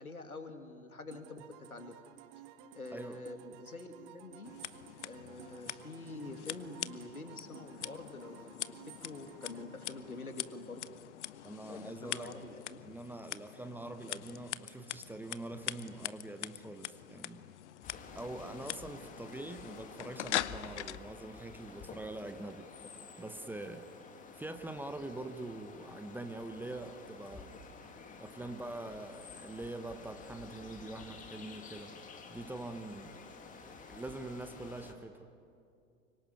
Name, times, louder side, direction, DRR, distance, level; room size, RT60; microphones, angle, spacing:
voice 1, 0.0-1.9 2.7-4.5 5.0-10.9 11.7-12.8, left 3 dB, 80° left, 7 dB, 2.4 m, -46 dB
sound 1, 1.1-10.8, right 10 dB, 35° right, 1.1 m, -55 dB
voice 2, 2.9-3.2 11.4-12.4 12.8-17.5 18.1-22.7 23.2-23.9 24.4-27.5 28.2-31.9 32.3-33.2 33.6-35.2, right 2 dB, 5° right, 9 dB, 0.8 m, -44 dB
Scissors, 4.4-21.0, left 13 dB, 55° left, 0.8 m, -43 dB
sound 2, 17.8-34.9, left 4 dB, 20° left, 2.4 m, -51 dB
25.5 x 23.0 x 9.3 m, 2.5 s
figure-of-eight pair, 95°, 43 cm